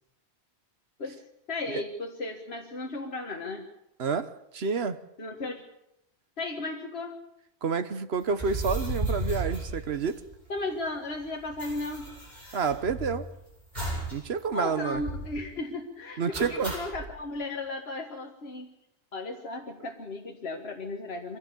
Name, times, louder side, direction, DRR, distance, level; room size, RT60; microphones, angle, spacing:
voice 1, 1.5-3.7 5.2-5.7 6.4-7.2 10.5-12.1 14.5-18.7 19.1-21.4, left 2 dB, 65° left, 1.9 m, -35 dB
voice 2, 4.0-5.0 7.6-10.2 12.5-13.3 14.1-15.0 16.2-16.8, right 5 dB, 65° right, 1.3 m, -29 dB
sound 1, 8.3-10.6 10.9-11.0 11.1-13.3 13.8-14.2 14.5-14.6 14.9-15.4 16.3-17.1, right 1 dB, 40° right, 8.3 m, -34 dB
23.5 x 16.0 x 7.1 m
omnidirectional pair, 1.1 m